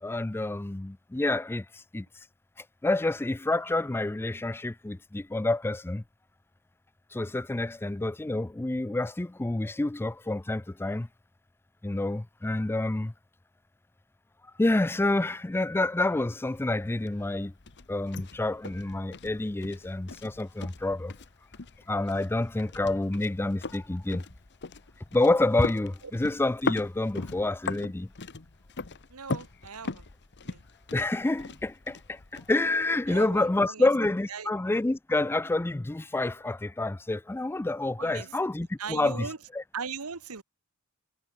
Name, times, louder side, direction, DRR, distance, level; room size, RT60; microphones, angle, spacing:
voice 1, 0.0-2.1 2.8-6.0 7.1-11.1 11.8-13.1 14.6-17.5 17.9-21.1 21.9-24.2 25.1-28.1 30.9-39.3, left 2 dB, 10° left, 0.4 m, -28 dB
sound 1, 16.5-33.5, left 3 dB, 55° left, 1.3 m, -40 dB
voice 2, 29.1-30.1 30.4-30.6 33.1-33.9 34.3-34.5 38.0-39.4 39.7-40.4, right 5 dB, 85° right, 1.4 m, -39 dB
head